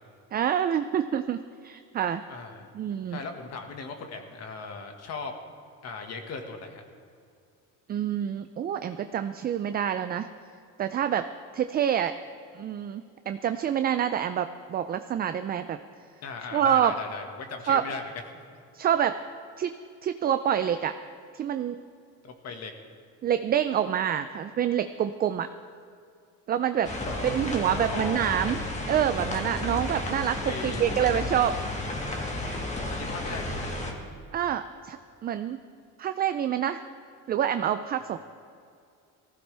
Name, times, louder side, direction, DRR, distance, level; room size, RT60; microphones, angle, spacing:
voice 1, 0.3-2.2 2.7-3.2 7.9-10.3 10.8-11.3 11.5-12.2 12.5-15.8 16.5-16.9 17.7-17.8 18.7-19.2 19.6-19.8 20.0-20.9 21.3-21.8 23.2-25.5 26.5-26.9 27.2-28.6 28.9-31.5 34.3-35.0 35.2-35.6 36.0-36.8 37.3-38.2, right 9 dB, 30° right, 10 dB, 0.3 m, -27 dB
voice 2, 2.3-2.7 3.1-5.3 5.8-6.8 16.2-18.0 22.2-22.7 27.1-28.5 30.5-31.4 32.9-33.7, left 4 dB, 50° left, 4 dB, 1.6 m, -38 dB
sound 1, 26.8-33.9, left 1 dB, 20° left, 1.7 m, -32 dB
19.5 x 15.0 x 3.4 m, 2.4 s
cardioid pair, 145°, 34 cm